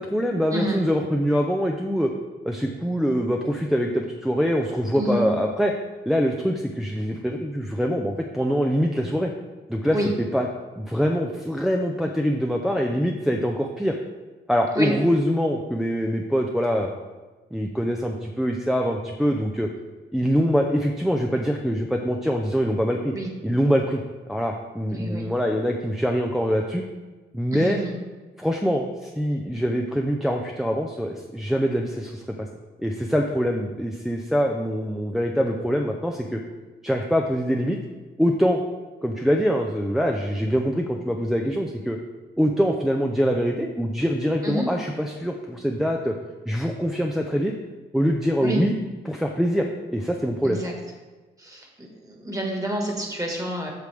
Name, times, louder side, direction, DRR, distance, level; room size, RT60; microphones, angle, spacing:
voice 1, 0.0-2.1 2.4-5.7 6.1-9.3 9.7-10.5 10.8-13.9 14.5-16.9 17.5-19.7 20.1-23.1 23.4-24.0 24.3-26.8 27.3-27.8 28.4-32.5 32.8-36.4 36.8-37.8 38.2-38.6 39.0-42.0 42.4-46.1 46.5-47.5 47.9-48.7 49.1-50.6, equal, ahead, 1 dB, 0.6 m, -24 dB
voice 2, 4.9-5.3 9.9-10.1 14.7-14.9 23.1-23.3 24.9-25.3 27.5-27.9 44.4-44.7 48.4-48.6 50.4-50.7 51.4-53.7, right 1 dB, 20° right, 0 dB, 1.8 m, -28 dB
8.2 x 6.2 x 3.5 m, 1.2 s
cardioid pair, 90°, 18 cm